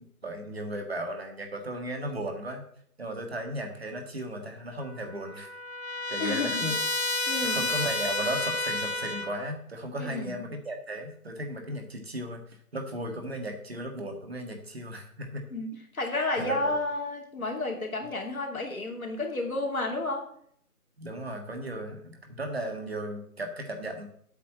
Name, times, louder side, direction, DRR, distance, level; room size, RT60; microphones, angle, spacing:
voice 1, 0.0-2.6 3.0-5.5 6.1-6.8 7.4-12.4 12.7-15.4 16.4-16.7 21.0-24.1, right 1 dB, 40° right, 4 dB, 1.8 m, -36 dB
Trumpet, 4.8-9.5, left 2 dB, 45° left, 0.7 m, -31 dB
voice 2, 6.2-6.6 7.3-7.6 10.0-10.4 15.5-20.3, left 2 dB, 65° left, 2 dB, 2.8 m, -31 dB
8.1 x 6.0 x 7.3 m, 0.65 s
figure-of-eight pair, 170°, 46 cm